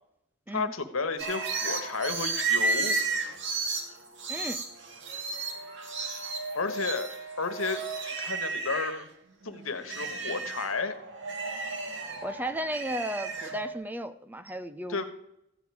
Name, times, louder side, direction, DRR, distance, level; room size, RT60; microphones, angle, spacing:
voice 1, 0.5-3.0 6.5-7.1 7.4-7.8 8.2-9.1 9.4-10.9 14.9-15.0, left 4 dB, 85° left, 9 dB, 1.4 m, -32 dB
sound 1, 1.2-9.0 9.4-13.7, right 4 dB, 60° right, 2.1 m, -33 dB
voice 2, 4.3-4.6 12.2-15.0, right 1 dB, 10° right, 11 dB, 0.6 m, -34 dB
14.5 x 5.1 x 9.4 m, 0.80 s
head